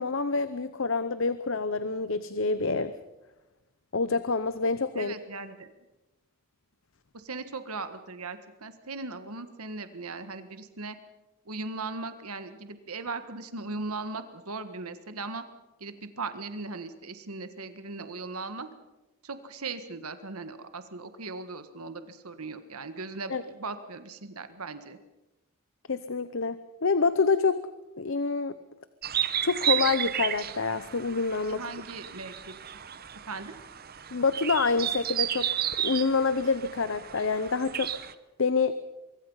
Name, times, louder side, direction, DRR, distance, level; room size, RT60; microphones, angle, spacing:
voice 1, 0.0-2.9 3.9-5.1 23.3-23.4 25.9-27.6 28.0-28.6 29.4-31.6 34.1-35.5 35.8-37.9 38.4-38.7, left 4 dB, 60° left, 13 dB, 0.8 m, -27 dB
voice 2, 4.9-5.7 7.1-11.0 11.4-15.4 15.8-18.7 19.2-25.0 31.5-32.6 33.3-33.5, right 3 dB, 80° right, 10 dB, 1.6 m, -38 dB
sound 1, 29.0-38.1, right 10 dB, 45° right, 0.9 m, -33 dB
24.0 x 23.5 x 5.6 m, 1.0 s
head